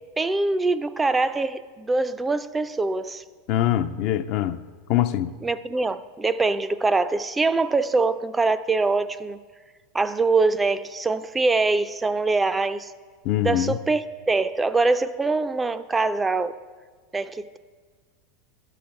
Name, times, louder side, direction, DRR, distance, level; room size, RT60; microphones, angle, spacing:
voice 1, 0.2-3.2 5.4-9.4 9.9-12.9 13.4-16.5 17.1-17.6, right 3 dB, 15° right, 0.3 m, -23 dB
voice 2, 3.5-4.6 4.9-5.3 13.2-13.8, left 12 dB, 55° left, 0.4 m, -23 dB
12.0 x 5.8 x 5.2 m
supercardioid pair, 120°, 0 cm